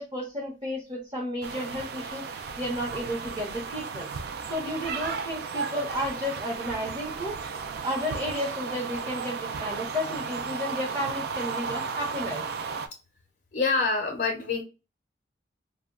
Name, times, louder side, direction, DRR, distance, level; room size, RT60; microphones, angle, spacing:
voice 1, 0.0-4.1 4.4-7.4 7.8-12.4, equal, 25° right, -4 dB, 0.7 m, -32 dB
sound 1, 1.4-12.9, right 5 dB, 60° right, 0.3 m, -34 dB
voice 2, 13.5-14.6, left 4 dB, 50° left, 1 dB, 0.6 m, -26 dB
2.2 x 2.1 x 3.5 m, 0.31 s
head